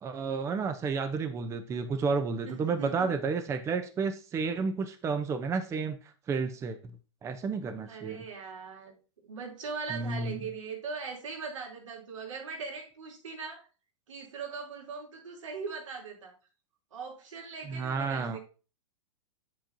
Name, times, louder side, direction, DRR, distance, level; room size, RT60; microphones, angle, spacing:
voice 1, 0.0-6.0 6.3-7.0 7.2-8.2 9.9-10.5 17.6-18.4, right 5 dB, 20° right, 8 dB, 0.7 m, -31 dB
voice 2, 2.4-3.1 7.9-8.9 9.2-13.6 14.1-16.3 16.9-18.4, right 5 dB, 80° right, -1 dB, 3.0 m, -40 dB
7.6 x 7.3 x 2.6 m, 0.34 s
hypercardioid pair, 120°, 16 cm